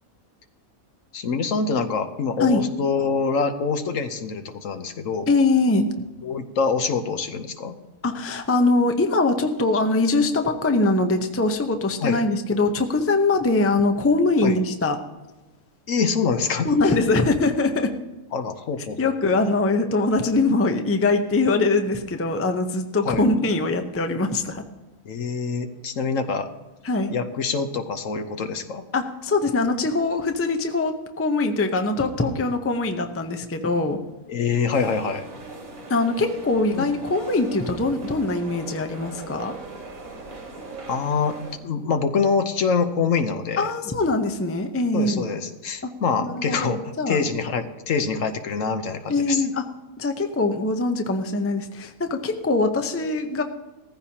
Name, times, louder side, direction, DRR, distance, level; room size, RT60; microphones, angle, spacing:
voice 1, 1.1-5.3 6.2-7.7 12.0-12.2 14.4-14.6 15.9-16.9 18.3-19.0 19.2-19.3 23.0-23.3 25.0-26.5 27.1-28.8 34.3-35.2 36.7-36.9 40.9-43.7 44.9-46.8 47.1-49.4, left 5 dB, 65° left, 8 dB, 1.2 m, -25 dB
voice 2, 5.3-5.9 8.0-15.0 16.6-17.9 19.0-24.6 26.8-27.1 28.9-34.0 35.9-39.5 43.6-45.3 46.2-47.2 49.1-49.6 50.0-53.4, left 3 dB, 15° left, 5 dB, 0.6 m, -22 dB
sound 1, 34.7-41.6, right 3 dB, 85° right, 3.3 m, -39 dB
17.0 x 14.5 x 2.9 m, 1.1 s
omnidirectional pair, 1.5 m